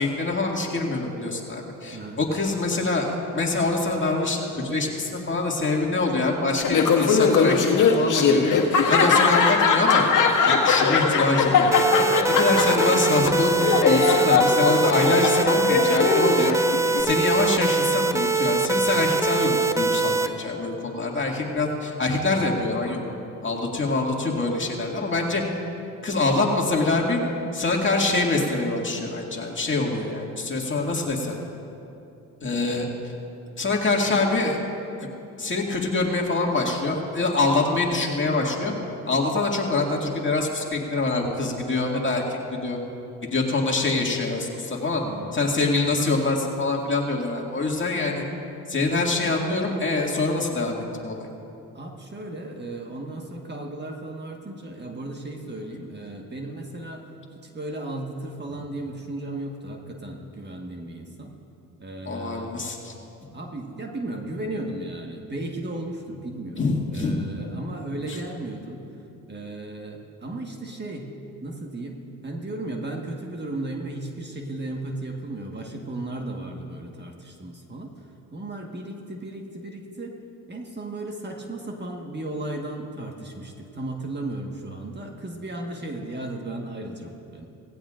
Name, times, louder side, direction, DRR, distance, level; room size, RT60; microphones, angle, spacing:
voice 1, 0.0-10.1 10.4-11.9 12.4-16.6 17.0-23.0 23.4-25.4 26.0-27.2 27.5-31.4 32.4-32.9 33.6-34.6 35.0-35.1 35.4-38.7 39.0-42.8 43.3-45.0 45.3-48.2 48.7-51.3 62.1-62.9 66.6-67.2 68.1-68.2, left 3 dB, 30° left, -1 dB, 2.2 m, -25 dB
Laughter, 6.6-17.0, left 5 dB, 55° left, 1.7 m, -21 dB
sound 1, 11.7-20.3, right 4 dB, 10° right, 0.5 m, -23 dB
voice 2, 45.0-45.4 51.7-57.0 57.5-61.4 61.8-62.6 63.3-68.8 69.3-71.1 71.4-72.0 72.2-77.9 78.3-80.1 80.5-87.5, right 2 dB, 30° right, 1 dB, 1.5 m, -35 dB
18.0 x 16.0 x 2.5 m, 2.7 s
supercardioid pair, 70°, 37 cm